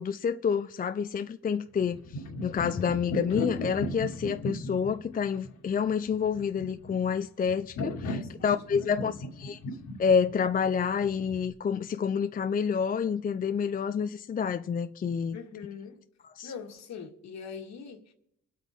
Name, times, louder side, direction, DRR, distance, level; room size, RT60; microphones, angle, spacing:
voice 1, 0.0-9.6 10.0-15.4 16.4-16.5, left 6 dB, 30° left, 0.4 m, -28 dB
sound 1, 1.8-11.5, left 1 dB, 85° left, 2.5 m, -36 dB
voice 2, 8.1-9.2 15.3-16.0 16.4-18.1, left 6 dB, 65° left, 1.9 m, -43 dB
24.5 x 8.3 x 3.6 m
cardioid pair, 90°, 30 cm